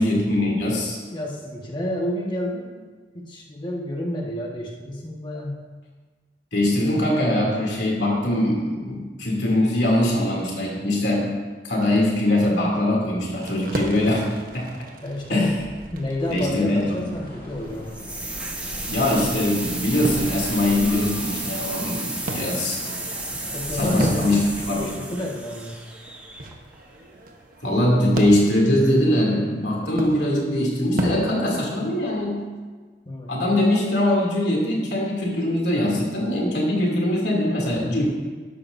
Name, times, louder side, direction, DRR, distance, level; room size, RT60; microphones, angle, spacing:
voice 1, 0.0-1.0 6.5-11.4 11.6-14.3 14.5-14.7 15.3-15.6 16.3-17.0 18.9-22.9 23.7-25.0 27.6-32.5 33.3-38.1, left 1 dB, 75° left, -3 dB, 2.9 m, -22 dB
voice 2, 1.1-2.9 3.1-5.7 15.0-15.5 15.9-17.9 23.5-24.5 24.7-25.8 33.0-33.3, left 1 dB, 25° left, -2 dB, 1.6 m, -29 dB
sound 1, 13.4-32.3, right 1 dB, 55° right, 1.1 m, -36 dB
sound 2, 17.1-24.8, left 1 dB, 55° left, 2.4 m, -39 dB
sound 3, 17.9-26.7, right 2 dB, 10° right, 1.1 m, -33 dB
13.0 x 11.0 x 2.7 m, 1.4 s
head